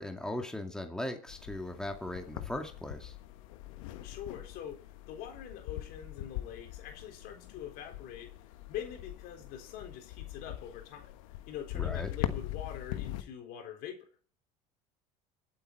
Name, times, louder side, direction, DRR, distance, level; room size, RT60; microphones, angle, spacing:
voice 1, 0.0-3.1 11.7-12.1, left 1 dB, 5° left, 3 dB, 2.3 m, -38 dB
sound 1, 1.3-13.2, left 14 dB, 80° left, 1.3 m, -42 dB
voice 2, 4.0-8.3 8.7-11.2 11.5-14.1, left 9 dB, 65° left, 4 dB, 3.8 m, -44 dB
24.0 x 8.4 x 4.5 m, 0.43 s
hypercardioid pair, 85°, 17 cm